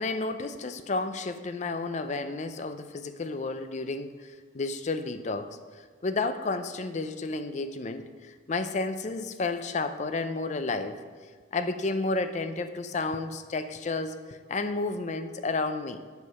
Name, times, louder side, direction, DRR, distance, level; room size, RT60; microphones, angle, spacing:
voice 1, 0.0-5.5 6.0-8.0 8.5-11.0 11.5-16.0, left 3 dB, 35° left, 10 dB, 0.5 m, -31 dB
8.1 x 6.8 x 5.4 m, 1.5 s
head